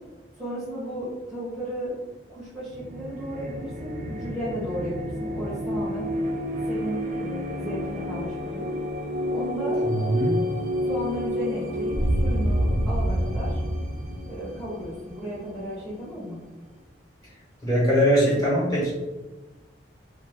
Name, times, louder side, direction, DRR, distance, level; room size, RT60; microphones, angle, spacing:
voice 1, 0.4-1.9 2.3-6.1 6.6-8.7 9.3-9.9 10.9-13.6 14.3-16.4, equal, ahead, -12 dB, 0.9 m, -34 dB
sound 1, 2.7-16.2, equal, 45° right, 0.4 m, -29 dB
voice 2, 9.8-10.4 17.6-18.9, equal, 20° left, -8 dB, 1.3 m, -21 dB
2.6 x 2.5 x 3.5 m, 1.1 s
head